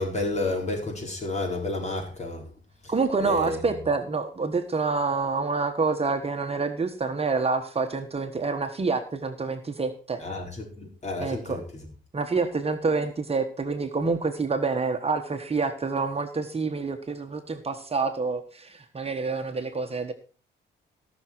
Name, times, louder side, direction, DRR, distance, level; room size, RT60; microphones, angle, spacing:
voice 1, 0.0-2.5 2.8-2.9 3.2-3.6 10.2-11.6, left 2 dB, 35° left, 5.0 m, -31 dB
voice 2, 2.9-10.2 11.2-11.6 12.1-20.1, right 4 dB, 30° right, 1.3 m, -27 dB
17.5 x 6.3 x 4.6 m
cardioid pair, 90°, 20 cm